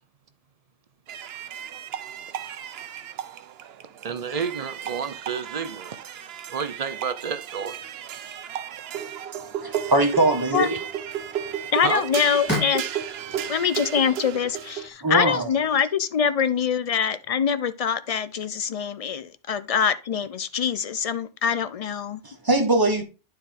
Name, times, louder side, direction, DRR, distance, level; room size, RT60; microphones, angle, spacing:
sound 1, 1.1-14.9, right 9 dB, 80° right, 0.8 m, -34 dB
voice 1, 4.0-6.0 6.5-7.9 10.7-10.8 11.8-12.1 13.4-13.5, right 6 dB, 45° right, 0.5 m, -30 dB
voice 2, 9.5-10.7 15.0-15.5 22.2-23.0, right 2 dB, 20° right, 1.3 m, -22 dB
sound 2, 9.6-15.8, left 1 dB, 10° left, 4.4 m, -38 dB
voice 3, 11.7-12.9 13.5-22.2, left 7 dB, 50° left, 0.4 m, -24 dB
9.9 x 4.5 x 3.5 m
omnidirectional pair, 1.0 m